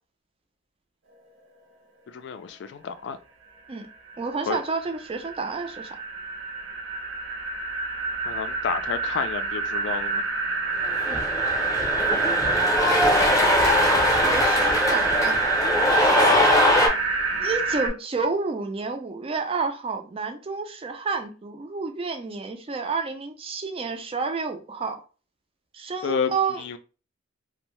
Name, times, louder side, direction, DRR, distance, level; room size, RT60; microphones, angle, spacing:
voice 1, 2.1-3.2 4.5-4.6 8.3-10.2 17.3-17.4 26.0-26.8, left 6 dB, 60° left, 0.3 m, -30 dB
sound 1, 3.7-17.9, right 3 dB, 70° right, 0.7 m, -27 dB
voice 2, 4.2-6.0 11.1-11.2 14.0-15.4 17.4-25.0 25.7-26.6, right 4 dB, 30° right, 0.4 m, -30 dB
Cheering, 10.8-16.9, left 1 dB, 15° left, 0.6 m, -21 dB
2.6 x 2.1 x 3.0 m
head